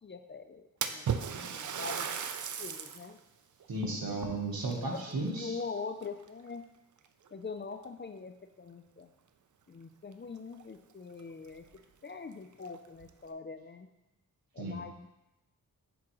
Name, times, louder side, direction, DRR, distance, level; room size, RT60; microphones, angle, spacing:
voice 1, 0.0-1.1 1.3-2.1 2.6-3.2 4.7-5.0 5.3-6.6 7.3-9.1 9.7-11.7 12.0-13.9 14.5-14.9, left 4 dB, 30° left, 7 dB, 0.4 m, -43 dB
Splash splatter, 0.8-3.1 3.6-3.7 4.6-5.7 6.0-6.5 7.3-7.4 7.8-7.9 10.1-10.2 10.5-10.6 11.2-11.3 11.7-11.8 12.5-13.1, right 7 dB, 55° right, 0.5 m, -36 dB
voice 2, 3.7-5.5 14.6-14.8, right 2 dB, 75° right, 0 dB, 1.2 m, -34 dB
8.5 x 3.7 x 3.0 m, 0.95 s
cardioid pair, 55°, 36 cm